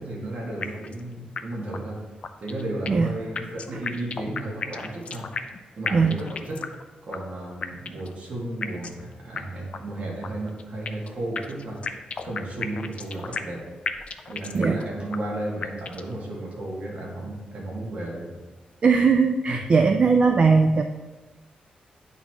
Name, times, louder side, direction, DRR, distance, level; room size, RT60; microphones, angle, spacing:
voice 1, 0.0-2.0 2.4-5.3 5.8-6.7 7.0-11.9 12.2-13.7 14.3-18.4 19.5-19.6, right 1 dB, 60° right, -3 dB, 2.0 m, -33 dB
sound 1, 0.6-1.0 1.4-1.5 1.7-1.8 2.2-3.1 3.4-5.6 5.9-6.8 7.1-7.2 7.6-8.1 8.6-9.0 9.4-9.5 9.7-9.8 10.2-11.1 11.4-13.6 13.9-14.8 15.1-15.2 15.6-16.1, left 5 dB, 45° left, 0.4 m, -33 dB
voice 2, 18.8-20.8, right 4 dB, 40° right, 6 dB, 0.3 m, -19 dB
10.0 x 4.1 x 3.0 m, 1.3 s
cardioid pair, 110°, 3 cm